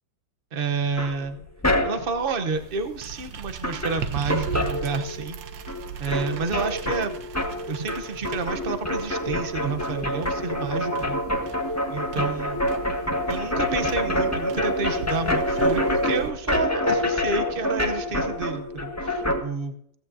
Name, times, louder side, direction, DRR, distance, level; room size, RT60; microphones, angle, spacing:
voice 1, 0.5-1.4 1.8-5.4 6.0-7.2 7.7-11.2 11.9-12.6 13.3-19.7, right 4 dB, 45° right, 9 dB, 0.7 m, -29 dB
sound 1, 1.0-2.2 3.3-3.4 3.6-5.4 5.7-19.4, left 1 dB, 10° left, 1.1 m, -27 dB
sound 2, 2.5-16.3, right 7 dB, 70° right, 1.5 m, -39 dB
16.0 x 15.0 x 2.7 m, 0.69 s
omnidirectional pair, 2.3 m